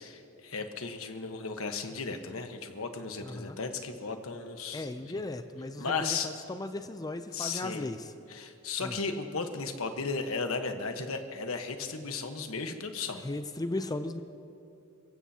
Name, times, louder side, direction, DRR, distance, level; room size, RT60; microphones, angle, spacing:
voice 1, 0.0-4.9 5.1-5.2 5.8-6.3 7.3-7.9 8.3-13.3, left 4 dB, 70° left, 6 dB, 1.3 m, -35 dB
voice 2, 3.2-3.6 4.7-8.1 8.8-9.0 13.2-14.2, left 2 dB, 20° left, 9 dB, 0.5 m, -36 dB
28.5 x 15.5 x 2.9 m, 2.7 s
head